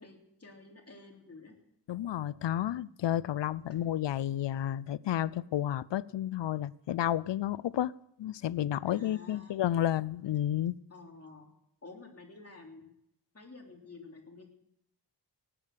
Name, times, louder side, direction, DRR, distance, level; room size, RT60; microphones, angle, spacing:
voice 1, 0.0-1.5 3.7-3.8 8.9-9.5 10.9-11.5 11.8-12.8 13.3-14.5, left 3 dB, 35° left, 1 dB, 3.3 m, -51 dB
voice 2, 1.9-7.9 8.2-10.8, left 12 dB, 90° left, 21 dB, 0.5 m, -31 dB
18.5 x 8.7 x 6.8 m, 0.78 s
wide cardioid pair, 105°, 42 cm